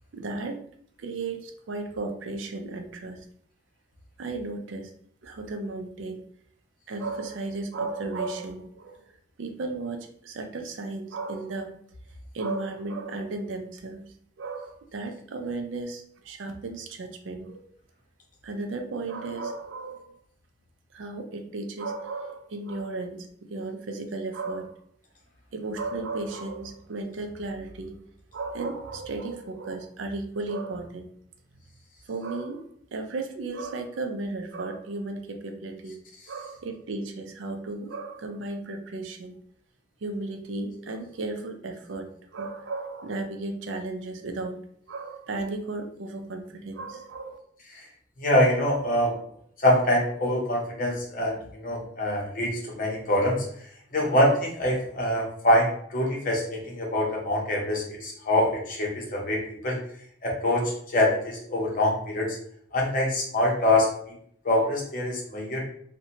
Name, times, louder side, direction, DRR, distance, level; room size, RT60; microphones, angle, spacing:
voice 1, 0.1-0.6 1.0-3.2 4.2-4.9 5.2-6.2 6.9-9.0 9.4-11.7 12.3-14.1 14.4-17.7 18.4-20.2 20.9-24.7 25.5-28.0 28.3-31.1 32.1-32.6 32.9-36.0 36.3-39.3 40.0-42.1 42.3-44.6 44.9-47.4, right 3 dB, 85° right, 5 dB, 0.4 m, -34 dB
voice 2, 48.2-49.1 49.6-53.4 53.9-59.8 60.2-62.4 62.7-63.9 64.4-65.6, left 1 dB, 45° left, -2 dB, 0.7 m, -24 dB
2.6 x 2.1 x 2.8 m, 0.65 s
head